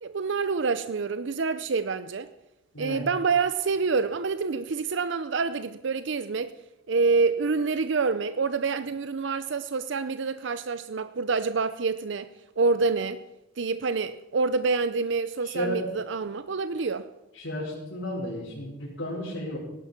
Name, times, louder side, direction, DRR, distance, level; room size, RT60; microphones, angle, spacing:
voice 1, 0.0-2.3 2.8-6.5 6.9-12.3 12.6-13.2 13.6-17.0, right 4 dB, 65° right, 0.6 m, -27 dB
voice 2, 2.7-3.1 15.4-15.9 17.3-19.6, equal, 70° left, 4.9 m, -33 dB
18.0 x 11.0 x 5.8 m
head